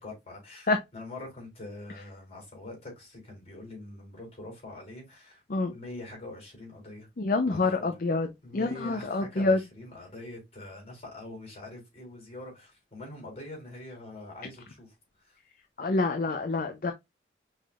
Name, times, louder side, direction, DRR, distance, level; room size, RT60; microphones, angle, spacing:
voice 1, 0.0-5.4 5.7-7.1 7.5-7.9 8.4-14.9 15.2-15.4, left 2 dB, 35° left, 3.4 m, -44 dB
voice 2, 7.2-8.3 8.5-9.6 15.8-16.9, left 3 dB, 50° left, 0.6 m, -26 dB
5.5 x 3.5 x 2.4 m
head